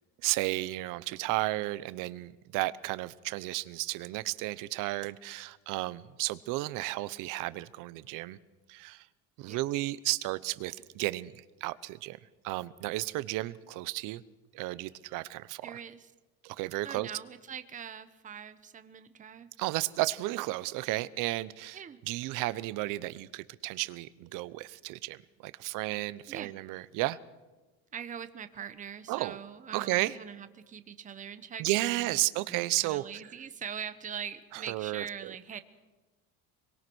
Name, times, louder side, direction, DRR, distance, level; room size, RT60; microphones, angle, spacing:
voice 1, 0.2-8.4 8.7-9.1 9.4-12.2 12.4-14.2 14.5-15.8 16.4-17.1 19.6-21.8 22.1-27.2 29.1-29.4 29.7-30.2 31.6-33.0 34.5-35.3, right 18 dB, 65° right, 17 dB, 1.0 m, -33 dB
voice 2, 15.6-16.1 16.8-19.5 21.7-22.0 26.3-26.5 27.9-35.6, right 8 dB, 25° right, 11 dB, 1.1 m, -43 dB
25.0 x 22.5 x 6.3 m, 1.2 s
cardioid pair, 155°, 34 cm